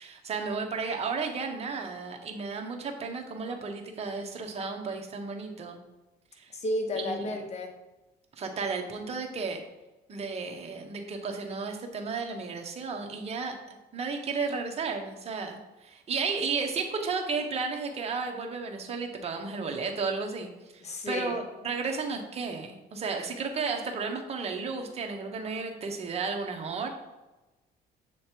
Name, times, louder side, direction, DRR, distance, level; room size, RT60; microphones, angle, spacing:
voice 1, 0.0-5.8 6.3-6.5 6.9-7.4 8.4-9.6 10.1-26.9, right 4 dB, 40° right, 3 dB, 1.0 m, -33 dB
voice 2, 6.5-7.7 20.8-21.4, left 1 dB, 40° left, 4 dB, 1.1 m, -32 dB
6.8 x 3.1 x 4.4 m, 1.1 s
cardioid pair, 110°, 17 cm